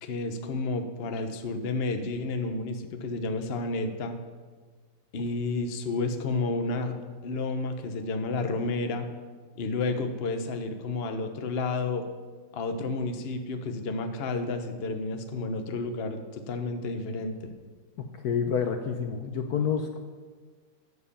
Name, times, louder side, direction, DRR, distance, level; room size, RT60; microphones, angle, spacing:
voice 1, 0.0-4.1 5.1-7.0 7.2-9.1 9.6-12.0 12.5-17.5, left 3 dB, 40° left, 6 dB, 1.0 m, -31 dB
voice 2, 18.0-20.0, left 7 dB, 60° left, 6 dB, 1.2 m, -28 dB
12.5 x 7.7 x 7.0 m, 1.5 s
omnidirectional pair, 2.0 m